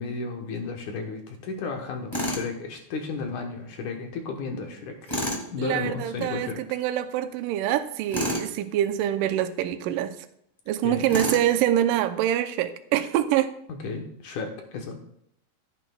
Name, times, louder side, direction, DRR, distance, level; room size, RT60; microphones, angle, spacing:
voice 1, 0.0-5.0 5.5-6.6 10.8-11.1 13.7-15.0, left 4 dB, 65° left, 2 dB, 2.2 m, -33 dB
Tools, 2.1-2.5 5.1-5.5 8.1-8.5 11.1-11.5, equal, 20° left, 0.7 m, -29 dB
voice 2, 5.6-10.2 10.7-13.5, right 12 dB, 85° right, 9 dB, 2.0 m, -25 dB
14.5 x 9.1 x 2.3 m, 0.73 s
omnidirectional pair, 4.4 m